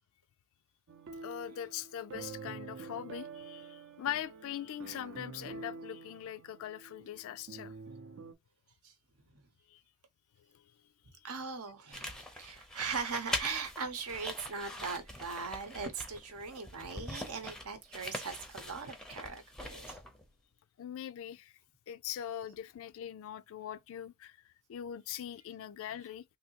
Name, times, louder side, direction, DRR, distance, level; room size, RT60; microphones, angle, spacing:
sound 1, 0.9-8.3, right 4 dB, 60° right, 0.5 m, -47 dB
voice 1, 1.2-7.7 9.7-9.8 10.5-10.6 20.8-21.5 21.9-24.4 24.7-26.2, left 10 dB, 60° left, 0.3 m, -41 dB
voice 2, 11.2-20.0, right 5 dB, 75° right, 0.8 m, -40 dB
sound 2, 11.9-20.3, left 1 dB, 5° left, 0.5 m, -43 dB
3.4 x 2.7 x 2.8 m
head